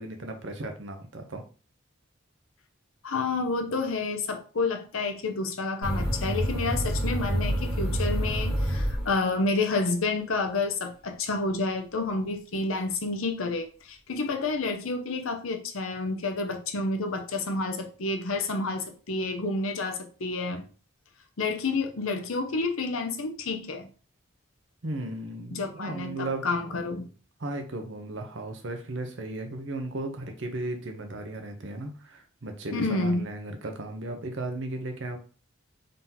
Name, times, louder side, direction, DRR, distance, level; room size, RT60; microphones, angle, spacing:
voice 1, 0.0-1.4 24.8-26.4 27.4-35.2, right 2 dB, 60° right, 5 dB, 0.8 m, -35 dB
voice 2, 3.0-20.6 21.4-23.9 25.5-27.1 32.7-33.2, left 3 dB, 80° left, 5 dB, 0.7 m, -29 dB
sound 1, 5.8-9.6, equal, 5° right, 1.3 m, -28 dB
3.9 x 2.8 x 3.8 m, 0.38 s
head